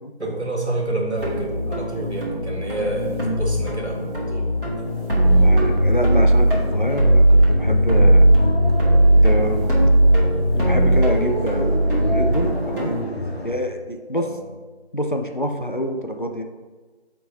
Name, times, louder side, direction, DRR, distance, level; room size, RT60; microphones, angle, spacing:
voice 1, 0.2-4.5 14.1-14.4, right 2 dB, 75° right, -1 dB, 2.0 m, -28 dB
sound 1, 1.2-13.0, right 1 dB, 55° right, 2.1 m, -18 dB
sound 2, 4.8-13.6, equal, 65° left, 1.3 m, -32 dB
voice 2, 5.3-8.3 9.2-9.7 10.4-13.0 13.4-14.3 14.9-16.4, equal, 50° left, 4 dB, 0.5 m, -26 dB
6.9 x 4.5 x 4.1 m, 1.3 s
figure-of-eight pair, 180°, 33 cm